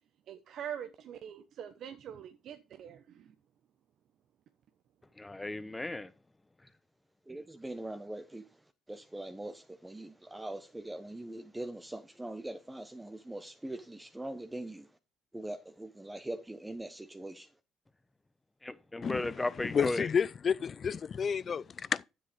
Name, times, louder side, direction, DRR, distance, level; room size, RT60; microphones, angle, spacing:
voice 1, 0.3-3.3, right 9 dB, 60° right, 1.0 m, -44 dB
voice 2, 5.2-6.1 18.6-20.1, left 2 dB, 15° left, 1.1 m, -35 dB
voice 3, 7.3-15.0 15.3-17.5, right 1 dB, 10° right, 1.1 m, -42 dB
voice 4, 19.7-22.0, left 6 dB, 45° left, 0.5 m, -30 dB
9.4 x 7.6 x 5.2 m
hypercardioid pair, 65°, 0 cm